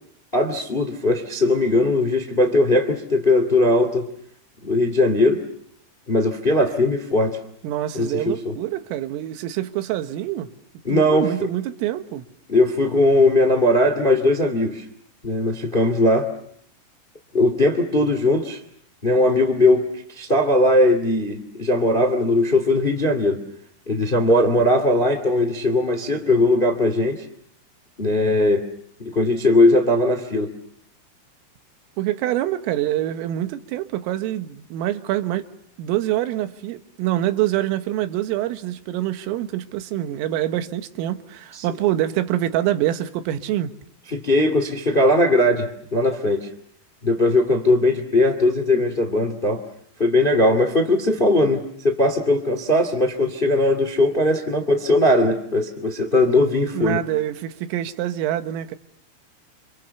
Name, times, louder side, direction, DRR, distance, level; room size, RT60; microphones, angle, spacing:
voice 1, 0.3-4.1 4.6-5.4 6.1-7.4 7.9-8.5 10.8-11.3 12.5-14.8 15.2-16.3 17.3-18.6 19.0-23.4 23.9-27.2 28.0-28.6 29.0-30.5 41.5-41.6 44.1-46.5 47.0-49.6 50.0-57.0, left 1 dB, 30° left, 0.9 m, -19 dB
voice 2, 7.6-10.5 10.9-12.2 32.0-35.5 35.8-43.7 56.7-58.8, right 13 dB, 90° right, 4.0 m, -25 dB
28.0 x 27.5 x 7.0 m
omnidirectional pair, 5.7 m